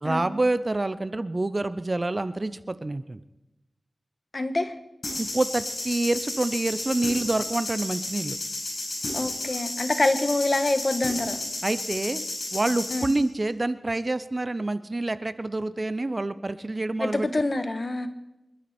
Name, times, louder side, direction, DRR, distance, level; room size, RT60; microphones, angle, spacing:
voice 1, 0.0-3.2 5.2-8.4 11.6-12.2 12.5-17.3, right 2 dB, 35° right, 14 dB, 0.7 m, -27 dB
voice 2, 4.3-4.7 9.1-11.4 12.9-13.1 17.0-18.1, left 2 dB, 40° left, 9 dB, 1.4 m, -26 dB
sound 1, 5.0-13.2, left 2 dB, 65° left, 7.7 m, -32 dB
26.5 x 12.0 x 4.4 m, 0.98 s
wide cardioid pair, 80°, 0 cm